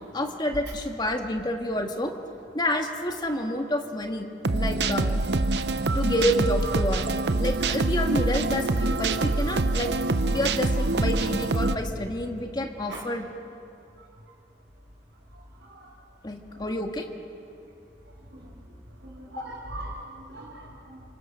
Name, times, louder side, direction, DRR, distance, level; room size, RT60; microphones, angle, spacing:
voice 1, 0.1-2.1 2.5-4.3 4.5-5.2 5.9-7.0 7.4-9.9 10.3-13.2 16.2-17.1 19.4-19.5, left 1 dB, 25° left, 3 dB, 2.0 m, -28 dB
sound 1, 4.4-11.8, right 2 dB, 70° right, 0.9 m, -25 dB
voice 2, 19.0-21.0, right 1 dB, 90° right, -7 dB, 4.7 m, -40 dB
30.0 x 26.0 x 6.5 m, 2.6 s
head